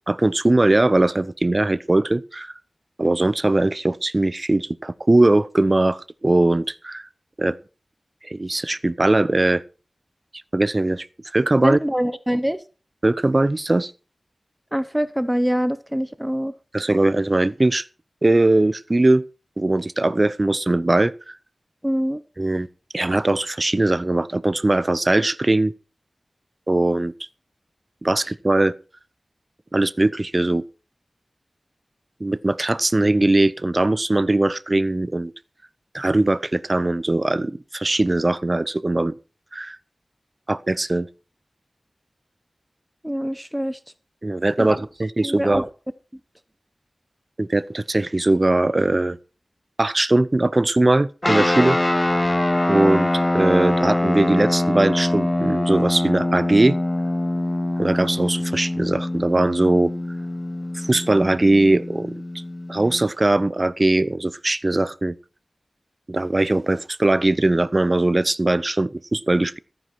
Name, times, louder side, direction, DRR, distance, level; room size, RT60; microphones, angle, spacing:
voice 1, 0.1-2.5 3.0-7.1 7.4-7.6 8.2-9.6 10.5-11.1 11.3-11.8 13.0-13.9 16.7-17.9 18.2-19.2 19.6-21.4 22.4-22.7 22.9-25.7 26.7-27.1 28.0-28.7 29.7-30.6 32.2-35.3 35.9-39.1 39.5-39.8 40.5-41.1 44.2-45.7 47.4-49.2 49.8-51.8 52.7-56.8 57.8-59.9 60.7-62.2 62.7-65.2 66.1-69.6, right 2 dB, 35° right, 0.7 m, -20 dB
voice 2, 11.6-12.6 14.7-16.5 21.8-22.2 43.0-43.8 44.6-44.7 45.2-45.7, equal, 5° right, 0.9 m, -24 dB
sound 1, 51.2-63.0, left 1 dB, 20° left, 0.6 m, -23 dB
14.0 x 9.6 x 4.7 m
wide cardioid pair, 75°, 0 cm